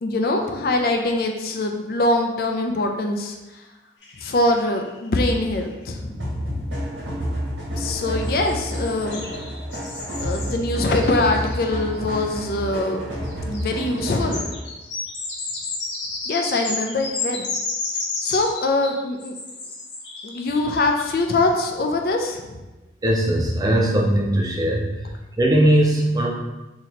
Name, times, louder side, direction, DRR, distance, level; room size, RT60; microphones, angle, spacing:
voice 1, 0.0-3.4 4.2-6.7 7.8-9.3 10.1-13.0 13.4-14.5 16.3-17.5 18.2-19.3 20.2-22.6, left 2 dB, 55° left, 3 dB, 0.4 m, -23 dB
sound 1, 4.0-5.1 5.4-5.5 5.7-5.8 8.0-12.6 13.2-21.4, left 3 dB, 85° left, 0.8 m, -32 dB
sound 2, 6.2-14.6, equal, 85° right, 1.4 m, -30 dB
voice 2, 23.0-25.0 25.4-26.3, right 1 dB, 20° right, 0 dB, 0.5 m, -19 dB
2.9 x 2.9 x 4.1 m, 1.1 s
head